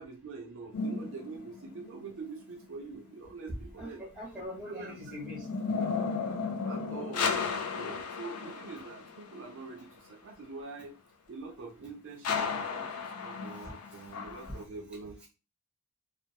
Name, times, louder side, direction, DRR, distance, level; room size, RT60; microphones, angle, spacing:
voice 1, 0.0-4.0 4.7-4.9 6.2-6.4 6.7-11.0 11.3-15.3, right 4 dB, 55° right, 3 dB, 0.4 m, -45 dB
sound 1, 0.7-2.0 4.5-9.4 12.2-14.6, left 5 dB, 80° left, 0.4 m, -34 dB
voice 2, 3.8-5.5 7.3-7.4, left 1 dB, 5° right, -3 dB, 0.8 m, -42 dB
2.3 x 2.2 x 2.8 m, 0.32 s
head